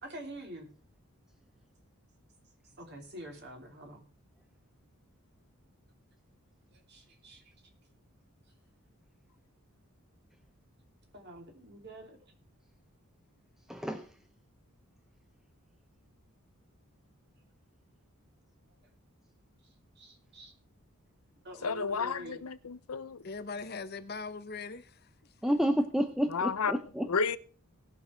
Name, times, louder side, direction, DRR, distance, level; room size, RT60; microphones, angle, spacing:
voice 1, 0.0-0.7 2.8-4.1 6.7-7.5 11.1-12.2 20.0-20.5 21.4-22.4, right 1 dB, 50° right, 3.0 m, -46 dB
voice 2, 13.7-14.1 25.4-27.1, equal, ahead, 0.6 m, -29 dB
voice 3, 21.6-23.2 26.3-26.8 27.1-27.4, left 5 dB, 85° left, 0.7 m, -32 dB
voice 4, 23.1-25.3, left 4 dB, 45° left, 0.8 m, -41 dB
18.5 x 6.3 x 4.4 m
head